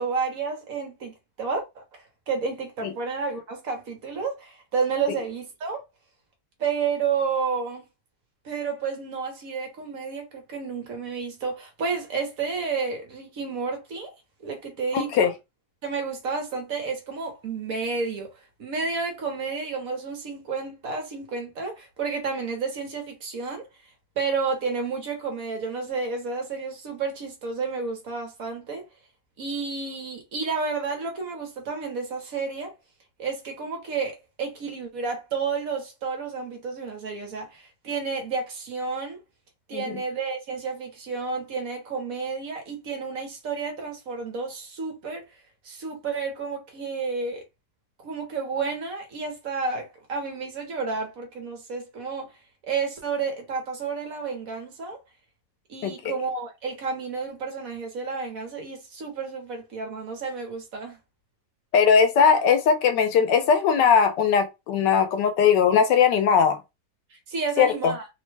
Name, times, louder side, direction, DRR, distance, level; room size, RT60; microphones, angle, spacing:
voice 1, 0.0-5.8 6.6-7.9 8.4-14.1 14.4-15.3 15.8-18.3 18.6-23.6 24.2-28.8 29.4-32.7 33.2-39.2 39.7-45.2 45.6-47.4 48.0-52.3 52.6-55.0 55.7-61.0 67.1-68.1, right 5 dB, 60° right, 1.2 m, -31 dB
voice 2, 14.9-15.3 39.7-39.8 55.8-55.9 61.7-66.6 67.6-67.9, left 6 dB, 85° left, 1.3 m, -19 dB
3.3 x 2.2 x 3.1 m
omnidirectional pair, 1.8 m